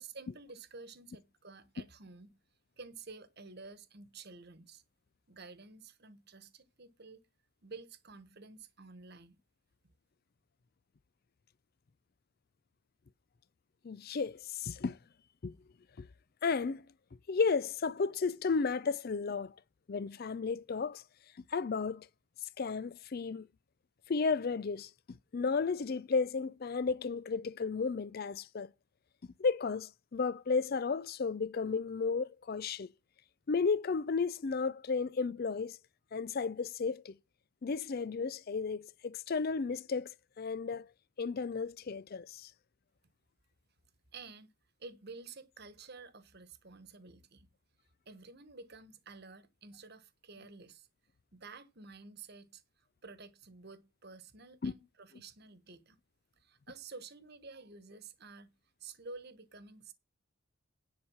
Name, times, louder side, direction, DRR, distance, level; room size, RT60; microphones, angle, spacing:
voice 1, 0.0-2.3 2.8-4.8 5.3-7.2 7.6-9.4 44.1-44.5 44.8-47.5 48.0-50.9 51.3-56.0 56.4-58.5 58.8-59.9, right 4 dB, 45° right, 1.3 m, -51 dB
voice 2, 13.8-15.0 15.4-15.6 16.0-16.1 16.4-16.9 17.3-19.5 19.9-21.0 21.5-22.1 22.6-23.5 24.1-28.7 29.4-32.9 33.5-35.8 36.1-37.2 37.6-40.9 41.2-42.5 54.6-54.7, left 4 dB, 45° left, 0.4 m, -33 dB
10.0 x 4.6 x 7.1 m
head